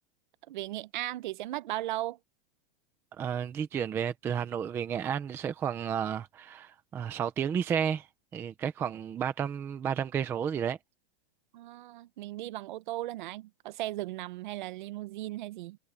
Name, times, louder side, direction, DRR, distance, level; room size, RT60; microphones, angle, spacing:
voice 1, 0.5-2.2 11.5-15.8, right 16 dB, 50° right, 0.7 m, -37 dB
voice 2, 3.2-8.1 8.3-10.8, right 8 dB, 5° right, 0.5 m, -32 dB
supercardioid pair, 175°, 32 cm